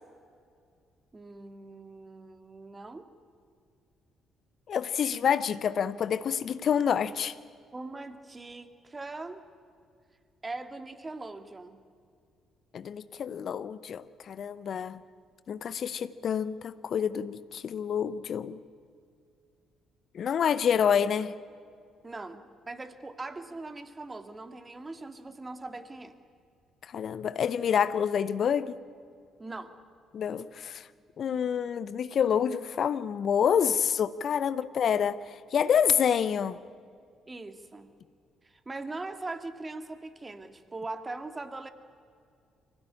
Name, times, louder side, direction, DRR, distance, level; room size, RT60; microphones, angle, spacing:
voice 1, 1.1-3.1 7.7-9.4 10.4-11.8 22.0-26.1 29.4-29.7 37.3-37.9 38.4-41.7, right 2 dB, 25° right, 2.0 m, -41 dB
voice 2, 4.7-7.3 12.7-15.0 15.5-18.6 20.1-21.3 26.9-28.8 30.1-30.9 31.2-36.6, left 8 dB, 55° left, 0.7 m, -27 dB
24.5 x 17.0 x 9.9 m
hypercardioid pair, 45°, 0 cm